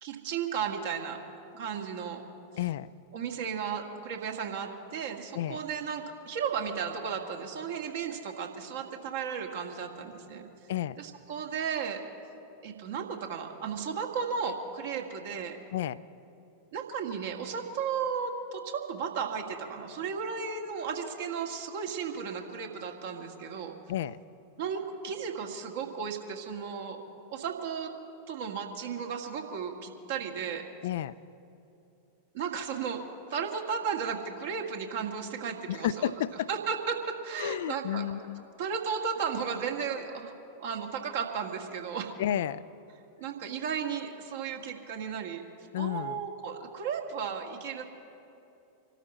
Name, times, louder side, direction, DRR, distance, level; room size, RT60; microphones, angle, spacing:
voice 1, 0.0-1.2 1.5-2.2 3.1-10.5 11.0-12.0 12.6-15.6 16.7-23.7 24.6-27.0 27.3-27.9 28.3-30.6 32.3-33.0 33.3-36.1 36.5-38.1 38.6-40.3 40.6-42.1 43.2-45.4 45.8-47.8, right 6 dB, 55° right, 2 dB, 1.7 m, -34 dB
voice 2, 2.6-2.9 5.3-5.6 10.7-11.0 15.7-16.0 23.9-24.2 30.8-31.2 35.7-36.5 37.4-38.4 42.2-42.7 45.7-46.2, left 11 dB, 55° left, 16 dB, 0.4 m, -31 dB
26.0 x 13.0 x 4.2 m, 2.7 s
figure-of-eight pair, 90°, 0 cm